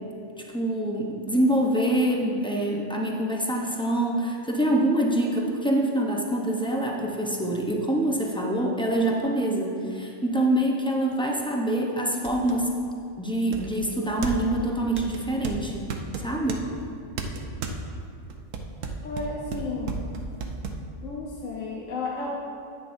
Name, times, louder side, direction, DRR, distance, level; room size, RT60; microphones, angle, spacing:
voice 1, 0.4-12.7 13.2-15.9 16.2-16.7, right 1 dB, 5° left, -1 dB, 0.4 m, -25 dB
sound 1, 11.1-11.2 11.7-11.8 12.3-12.6 13.5-14.6 15.0-16.6 17.2-17.8 18.3-20.8, right 5 dB, 70° right, 1.1 m, -33 dB
voice 2, 19.0-20.0 21.0-22.4, left 3 dB, 70° left, -4 dB, 1.2 m, -33 dB
9.7 x 9.5 x 2.6 m, 2.4 s
omnidirectional pair, 1.4 m